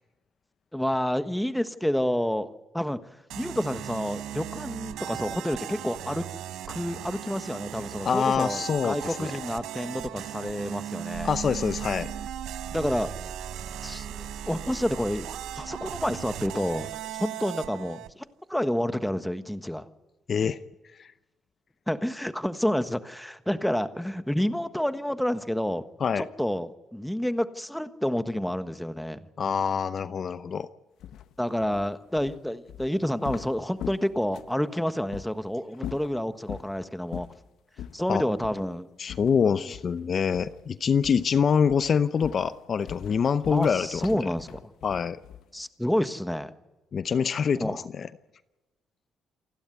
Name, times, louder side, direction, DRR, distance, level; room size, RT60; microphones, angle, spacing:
voice 1, 0.7-3.0 3.4-6.3 6.7-11.3 12.7-13.1 13.8-15.3 15.5-19.9 21.9-25.8 26.2-29.2 31.4-37.3 37.9-38.9 39.6-39.7 43.5-44.6 45.5-46.5 47.6-47.9, equal, 5° left, 10 dB, 1.4 m, -29 dB
sound 1, 3.3-18.1, right 12 dB, 85° right, 0.7 m, -38 dB
voice 2, 8.0-9.3 11.2-12.1 20.3-20.6 21.0-21.1 26.0-26.3 29.4-30.7 38.1-38.2 39.0-44.3 44.8-45.2 46.9-48.1, left 6 dB, 50° left, 13 dB, 0.7 m, -25 dB
sound 2, 11.1-17.3, right 5 dB, 50° right, 1.5 m, -42 dB
sound 3, 31.0-34.6 35.1-35.3 35.7-36.7 37.1-37.4 37.8-38.0 38.4-38.6 39.1-40.0 40.3-40.7 41.0-41.3 41.7-45.6, left 10 dB, 80° left, 0.9 m, -42 dB
28.5 x 12.0 x 9.5 m, 1.1 s
cardioid pair, 90°, 0 cm